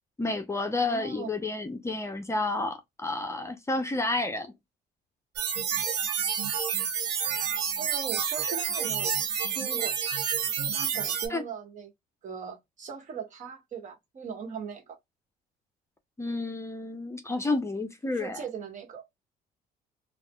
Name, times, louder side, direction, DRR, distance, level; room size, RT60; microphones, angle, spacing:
voice 1, 0.2-4.5 11.3-11.4 16.2-18.4, left 2 dB, 15° left, 0.7 m, -30 dB
voice 2, 0.7-1.3 7.8-9.1 9.5-10.0 10.6-11.9 12.2-15.0 18.0-19.0, right 6 dB, 50° right, 1.4 m, -39 dB
sound 1, 5.4-11.3, right 7 dB, 85° right, 0.9 m, -29 dB
3.3 x 2.4 x 2.3 m
cardioid pair, 110°, 17 cm